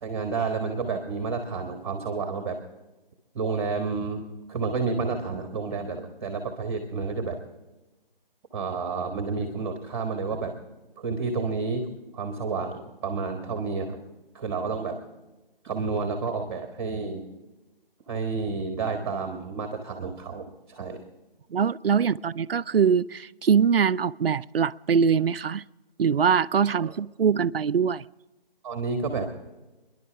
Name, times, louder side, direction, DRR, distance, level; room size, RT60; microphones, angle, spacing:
voice 1, 0.0-2.6 3.3-7.4 8.5-10.5 11.0-11.9 12.1-14.0 14.3-15.0 15.6-17.3 18.1-21.0 26.7-26.9 28.6-29.3, right 4 dB, 25° right, 5 dB, 1.6 m, -30 dB
voice 2, 21.5-25.6 26.0-28.1, right 6 dB, 75° right, 16 dB, 0.5 m, -23 dB
28.5 x 11.0 x 3.4 m, 1.1 s
figure-of-eight pair, 155°, 30 cm